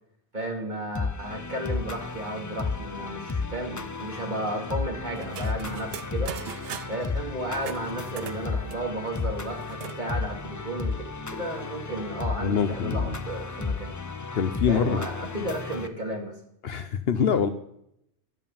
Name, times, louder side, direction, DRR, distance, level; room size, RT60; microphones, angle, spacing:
voice 1, 0.3-6.3 6.9-10.9 11.3-13.9 14.7-16.4, right 1 dB, 45° right, 0 dB, 2.6 m, -33 dB
sound 1, 0.9-15.9, left 4 dB, 25° left, 0.4 m, -33 dB
sound 2, 5.2-7.1 7.6-10.0 10.4-10.5 10.7-11.3, right 9 dB, 65° right, 0.8 m, -41 dB
voice 2, 12.4-13.2 14.3-15.1 16.6-17.5, left 7 dB, 65° left, 10 dB, 1.0 m, -25 dB
11.0 x 7.5 x 7.1 m, 0.75 s
omnidirectional pair, 1.2 m